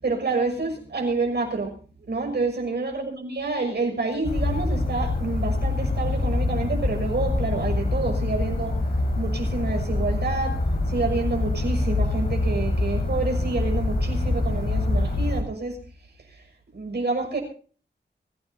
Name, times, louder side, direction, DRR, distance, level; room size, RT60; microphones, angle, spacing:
voice 1, 0.0-1.7 2.1-8.8 9.1-10.6 10.9-15.8 16.3-16.4 16.7-17.4, right 3 dB, 65° right, 3 dB, 6.2 m, -28 dB
sound 1, 4.2-15.4, left 2 dB, 55° left, 4.7 m, -25 dB
24.0 x 15.5 x 2.7 m, 0.41 s
wide cardioid pair, 140°, 19 cm